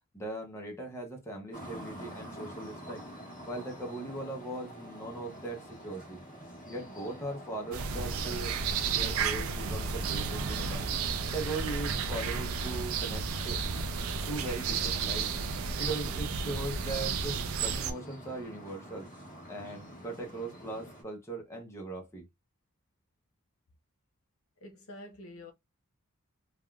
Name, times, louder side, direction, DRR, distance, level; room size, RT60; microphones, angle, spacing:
voice 1, 0.1-3.1 3.5-6.2 6.7-8.6 8.8-10.9 11.3-13.6 14.3-15.3 15.8-19.1 19.5-22.3, right 2 dB, 15° left, 0.7 m, -39 dB
sound 1, 1.5-21.0, equal, 40° left, 1.3 m, -47 dB
sound 2, 7.7-17.9, right 5 dB, 75° right, 0.4 m, -32 dB
voice 2, 24.6-25.5, left 1 dB, 70° left, 0.9 m, -47 dB
3.4 x 2.2 x 2.3 m
head